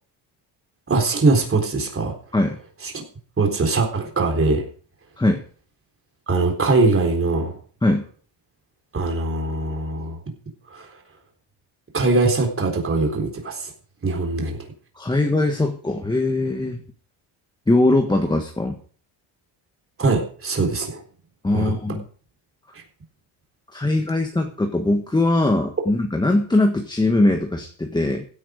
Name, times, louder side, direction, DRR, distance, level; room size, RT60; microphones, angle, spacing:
voice 1, 0.9-2.1 2.9-3.0 3.4-4.6 6.3-7.6 8.9-10.2 10.7-10.9 11.9-13.7 14.0-14.6 20.0-21.0 21.5-21.8, right 3 dB, 25° right, 1 dB, 3.9 m, -21 dB
voice 2, 15.0-16.8 17.7-18.8 21.4-22.0 23.7-28.3, left 2 dB, 10° left, 4 dB, 1.4 m, -21 dB
16.0 x 8.9 x 5.2 m, 0.43 s
cardioid pair, 125°, 47 cm